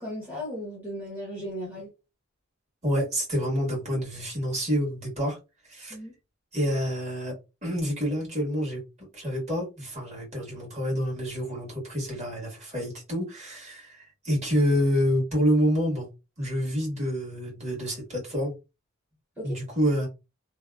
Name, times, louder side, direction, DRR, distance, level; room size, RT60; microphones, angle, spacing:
voice 1, 0.0-1.9 5.9-6.1 19.4-19.6, equal, 10° right, 0.8 m, -36 dB
voice 2, 2.8-5.4 5.7-6.0 6.5-7.3 7.6-16.1 16.4-18.5 19.4-20.1, equal, 30° right, 1.3 m, -28 dB
2.7 x 2.1 x 2.2 m
head